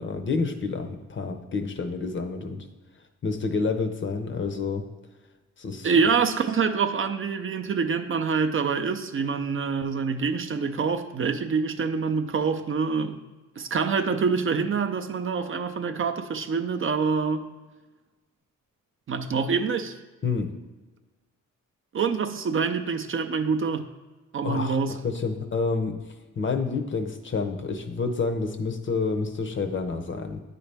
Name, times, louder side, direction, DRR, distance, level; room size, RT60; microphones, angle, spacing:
voice 1, 0.0-2.7 3.2-4.9 5.6-5.9 20.2-20.5 24.4-26.0 26.4-30.4, left 4 dB, 40° left, 6 dB, 0.6 m, -28 dB
voice 2, 5.8-13.3 13.6-17.5 19.1-20.0 21.9-23.9 24.3-25.0, right 5 dB, 45° right, 6 dB, 0.4 m, -26 dB
9.6 x 4.1 x 3.3 m, 1.2 s
wide cardioid pair, 115°, 30 cm